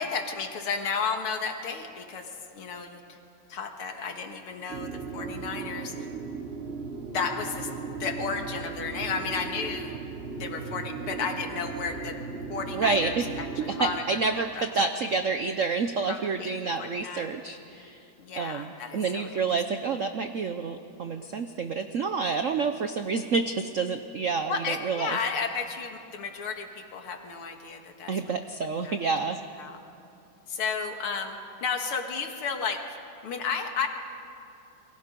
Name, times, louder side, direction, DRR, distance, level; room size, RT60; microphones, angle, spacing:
voice 1, 0.0-3.2 3.5-6.1 7.1-7.7 8.0-10.0 10.4-12.2 12.5-14.0 14.3-15.1 16.1-16.5 16.8-17.3 18.2-19.4 24.5-28.1 28.7-29.1 29.6-29.8 30.5-33.0 33.2-33.9, left 5 dB, 75° left, 4 dB, 2.6 m, -33 dB
sound 1, 4.7-14.0, right 4 dB, 40° right, 0.9 m, -37 dB
voice 2, 12.7-13.3 13.7-18.0 18.4-25.2 28.1-29.4, right 4 dB, 85° right, 8 dB, 0.6 m, -28 dB
29.5 x 22.5 x 5.3 m, 2.7 s
omnidirectional pair, 2.4 m